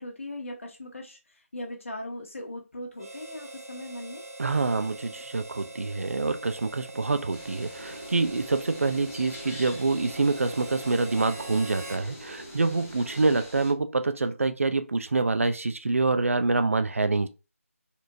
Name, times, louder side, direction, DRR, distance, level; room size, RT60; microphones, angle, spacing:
voice 1, 0.0-4.2, left 1 dB, 60° left, 1.6 m, -39 dB
Harmonica, 3.0-12.1, right 2 dB, 80° right, 1.0 m, -43 dB
voice 2, 4.4-17.3, right 3 dB, 65° right, 0.5 m, -26 dB
sound 1, 7.3-13.7, left 1 dB, 15° left, 0.6 m, -46 dB
sound 2, 7.8-13.4, right 1 dB, 15° right, 1.4 m, -45 dB
4.1 x 3.0 x 2.6 m
figure-of-eight pair, 170°, 8 cm